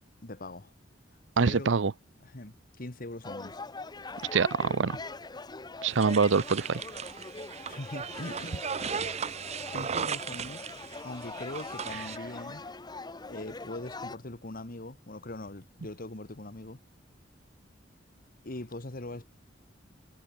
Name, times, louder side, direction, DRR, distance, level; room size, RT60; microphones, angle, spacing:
voice 1, 0.2-0.7 1.4-1.7 2.2-3.6 7.7-8.6 9.7-10.6 11.0-12.7 13.3-16.8 18.4-19.3, left 2 dB, 50° left, 1.8 m, -41 dB
voice 2, 1.4-1.9 4.3-5.0 5.8-6.8, right 5 dB, 75° right, 0.7 m, -25 dB
sound 1, 3.2-14.2, left 3 dB, 20° left, 0.9 m, -43 dB
sound 2, 5.9-12.2, right 7 dB, 35° right, 0.6 m, -37 dB
head